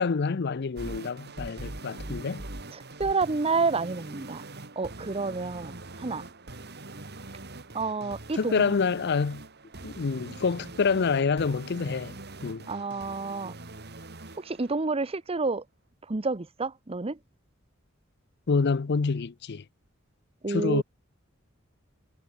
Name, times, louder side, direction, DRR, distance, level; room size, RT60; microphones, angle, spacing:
voice 1, 0.0-2.4 8.4-9.4 9.8-12.2 12.4-12.7 18.5-19.6 20.5-20.8, left 5 dB, 55° left, 0.5 m, -27 dB
sound 1, 0.8-14.8, right 2 dB, 55° right, 3.3 m, -43 dB
voice 2, 2.7-4.4 4.8-6.3 7.7-8.8 12.7-13.6 14.4-15.6 16.1-17.2 20.4-20.8, right 3 dB, 30° right, 0.8 m, -29 dB
head